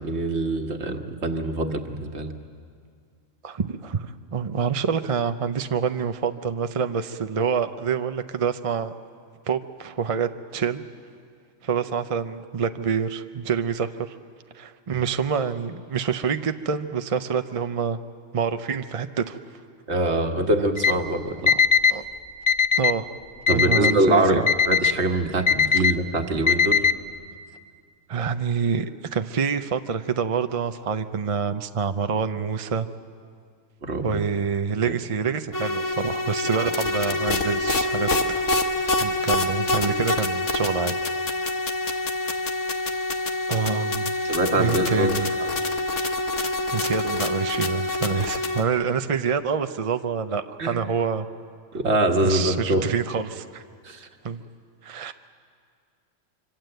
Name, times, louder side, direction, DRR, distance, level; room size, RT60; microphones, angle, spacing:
voice 1, 0.0-2.3 19.9-21.5 23.5-26.8 33.8-34.2 36.5-36.7 44.2-45.1 50.6-50.8 51.7-52.8 53.8-54.1, right 2 dB, 55° right, 4 dB, 1.7 m, -24 dB
voice 2, 3.4-8.9 9.5-10.8 11.6-14.2 14.5-18.0 18.3-19.4 21.5-21.6 21.9-22.0 22.8-23.1 23.5-24.5 28.1-28.9 29.1-32.9 34.0-38.4 38.8-41.0 43.5-45.4 46.7-51.3 52.2-53.6 54.2-54.4 54.8-55.1, right 6 dB, 40° right, 8 dB, 0.5 m, -27 dB
Alarm, 20.8-20.9 21.5-21.9 22.5-22.9 23.5-23.9 24.5-24.9 25.5-25.9 26.5-26.9, left 6 dB, 35° left, 0.5 m, -19 dB
sound 1, 35.5-48.6, left 2 dB, 70° left, 1.7 m, -26 dB
25.5 x 25.0 x 7.9 m, 2.2 s
omnidirectional pair, 1.3 m